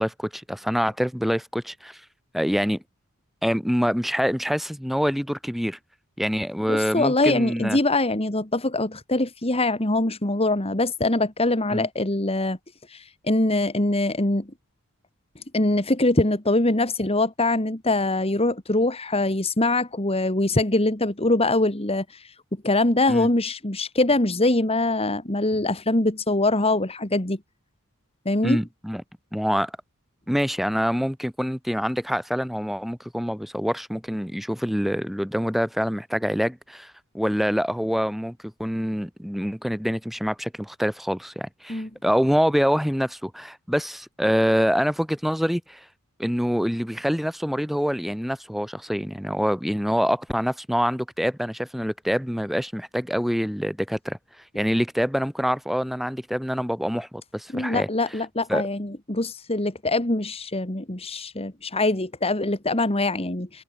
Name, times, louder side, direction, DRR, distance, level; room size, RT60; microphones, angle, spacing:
voice 1, 0.0-2.0 2.3-2.8 3.4-5.8 6.2-7.8 11.7-11.9 23.1-23.3 28.4-29.0 29.3-29.7 30.3-45.8 46.2-54.2 54.5-57.9 58.5-58.6, equal, ahead, 5.5 m, -25 dB
voice 2, 6.7-12.6 12.9-14.5 15.5-22.3 22.6-27.4 28.3-28.6 41.7-41.9 57.5-63.6, left 2 dB, 25° left, 2.4 m, -23 dB
head